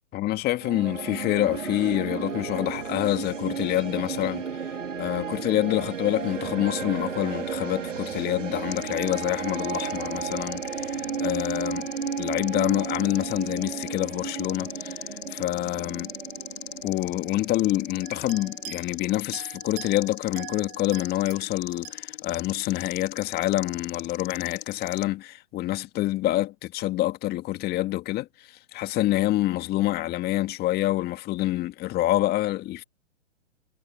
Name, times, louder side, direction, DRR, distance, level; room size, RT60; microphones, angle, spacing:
voice 1, 0.1-4.4 5.0-11.9 12.2-15.0 15.3-16.1 16.8-32.8, left 16 dB, 25° left, 2.1 m, -27 dB
sound 1, 0.6-18.8, right 6 dB, 85° right, 2.8 m, -34 dB
sound 2, 8.7-25.1, left 13 dB, 55° left, 3.1 m, -40 dB
sound 3, 18.0-19.0 19.3-22.0, right 32 dB, 35° right, 3.7 m, -44 dB
hypercardioid pair, 125°, 37 cm